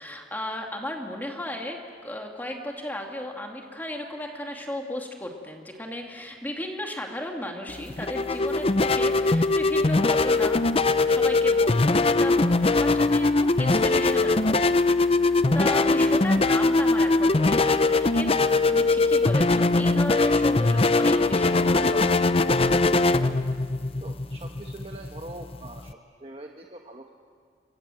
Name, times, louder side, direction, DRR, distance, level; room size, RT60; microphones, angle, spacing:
voice 1, 0.0-14.7 15.5-22.3, left 1 dB, 10° left, 2 dB, 2.4 m, -35 dB
sound 1, 7.7-25.9, left 3 dB, 30° left, 0.6 m, -21 dB
voice 2, 24.0-27.1, right 2 dB, 30° right, 2 dB, 1.3 m, -43 dB
29.5 x 24.0 x 7.8 m, 2.1 s
head